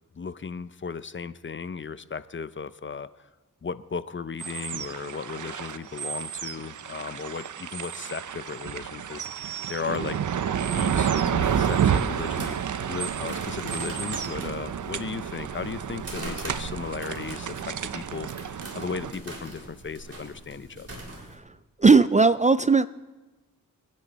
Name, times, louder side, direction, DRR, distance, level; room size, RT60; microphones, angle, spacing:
voice 1, 0.1-3.3 3.6-10.2 10.5-21.0, left 5 dB, 35° left, 15 dB, 0.6 m, -36 dB
sound 1, 4.4-19.1, right 8 dB, 60° right, 0.7 m, -30 dB
sound 2, 11.1-21.4, right 1 dB, 45° right, 4.4 m, -42 dB
voice 2, 21.8-22.9, right 4 dB, 20° right, 15 dB, 0.4 m, -17 dB
26.0 x 10.0 x 4.2 m, 1.1 s
cardioid pair, 60°, 34 cm